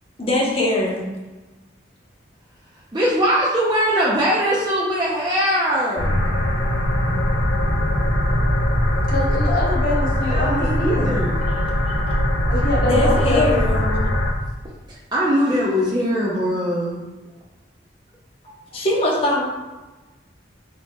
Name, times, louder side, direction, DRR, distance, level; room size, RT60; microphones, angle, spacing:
voice 1, 0.2-1.0 7.6-7.7 12.8-13.8 18.7-19.4, left 1 dB, 30° left, -3 dB, 0.8 m, -21 dB
voice 2, 2.9-6.3 10.2-11.6 15.1-17.0, equal, 25° right, -6 dB, 0.5 m, -21 dB
sound 1, 6.0-14.3, left 1 dB, 85° left, 0.6 m, -21 dB
voice 3, 9.1-11.2 12.5-14.1, left 2 dB, 50° left, -5 dB, 1.1 m, -25 dB
4.2 x 4.2 x 2.2 m, 1.2 s
head